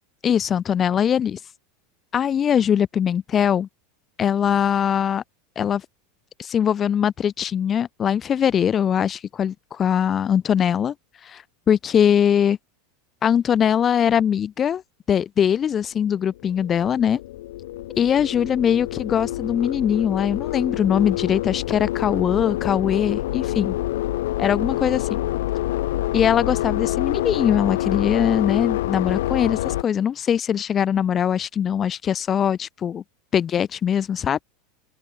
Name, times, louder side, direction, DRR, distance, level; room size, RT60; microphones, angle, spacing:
voice 1, 0.2-1.4 2.1-3.7 4.2-5.2 5.6-5.8 6.4-10.9 11.2-12.6 13.2-14.8 15.1-17.2 18.0-23.8 24.4-25.2 26.1-33.0 33.3-34.4, left 8 dB, 30° left, 1.1 m, -21 dB
sound 1, 16.2-29.8, left 15 dB, 80° left, 1.3 m, -27 dB
open air
supercardioid pair, 125°, 0 cm